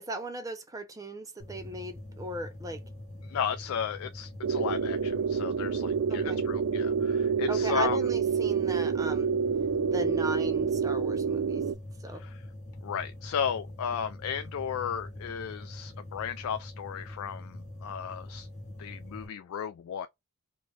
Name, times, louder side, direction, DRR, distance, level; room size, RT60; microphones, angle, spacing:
voice 1, 0.0-2.8 6.1-6.4 7.5-9.4 9.9-11.6 12.0-12.2, right 1 dB, 15° right, 0.6 m, -37 dB
sound 1, 1.4-19.3, left 1 dB, 30° left, 0.9 m, -44 dB
voice 2, 3.2-8.0 12.1-12.4 12.8-18.5 18.8-20.1, left 8 dB, 70° left, 0.3 m, -34 dB
sound 2, 4.4-11.7, right 6 dB, 70° right, 0.3 m, -28 dB
4.1 x 2.2 x 3.1 m
head